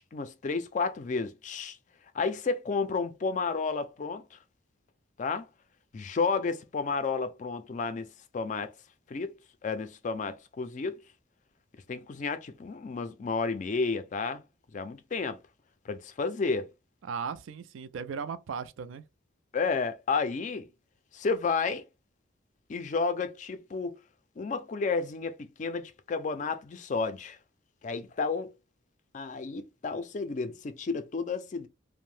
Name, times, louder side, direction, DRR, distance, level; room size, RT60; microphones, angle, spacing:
voice 1, 0.0-1.8 2.1-4.4 5.2-5.5 5.9-8.7 9.1-9.3 9.6-11.0 11.9-14.4 14.7-15.4 15.9-16.7 19.5-20.7 21.1-21.9 22.7-24.0 24.4-27.4 27.8-28.5 29.1-31.7, left 4 dB, 40° left, 0.3 m, -31 dB
voice 2, 17.0-19.0, right 6 dB, 85° right, 0.4 m, -37 dB
2.6 x 2.1 x 3.1 m
head